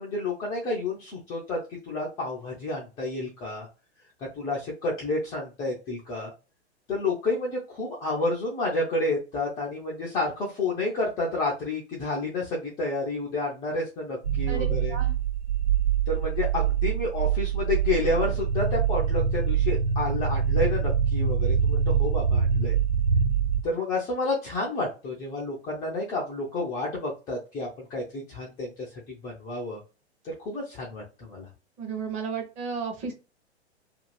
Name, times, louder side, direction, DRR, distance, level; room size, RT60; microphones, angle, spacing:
voice 1, 0.0-1.6 1.9-3.7 4.4-6.3 6.9-15.0 16.1-22.8 23.6-28.7 29.2-29.8 30.2-31.5, left 2 dB, 10° left, -4 dB, 0.3 m, -30 dB
sound 1, 14.2-23.6, right 7 dB, 80° right, 0.7 m, -24 dB
voice 2, 14.5-15.1 31.8-33.1, right 5 dB, 20° right, 3 dB, 0.7 m, -33 dB
2.6 x 2.3 x 3.1 m, 0.31 s
figure-of-eight pair, 105°, 34 cm